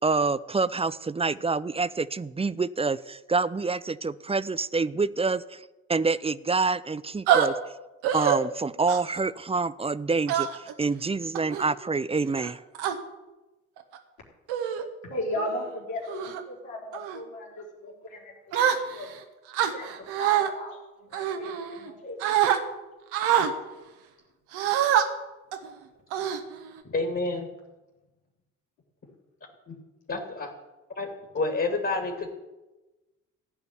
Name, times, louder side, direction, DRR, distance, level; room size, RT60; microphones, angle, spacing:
voice 1, 0.0-5.6 5.9-7.6 8.1-10.5 10.8-12.6, right 4 dB, 15° right, 17 dB, 0.6 m, -27 dB
sound 1, 7.3-7.5 8.0-8.4 8.9-9.2 10.3-10.7 11.3-11.6 12.4-12.9 13.8-14.0 14.5-14.9 15.3-15.6 16.1-16.4 16.9-17.2 18.5-19.2 19.5-20.5 21.1-21.9 22.2-22.6 23.1-23.5 24.5-25.1 25.5-25.7 26.1-26.8, right 10 dB, 70° right, 1.5 m, -25 dB
voice 2, 15.0-19.1 19.7-22.2, left 1 dB, 85° left, -3 dB, 3.8 m, -36 dB
voice 3, 26.8-27.5 29.7-29.8 30.1-30.5 31.0-31.1 31.3-32.3, left 3 dB, 35° left, 2 dB, 2.8 m, -28 dB
15.5 x 5.3 x 9.9 m, 1.1 s
hypercardioid pair, 50°, 40 cm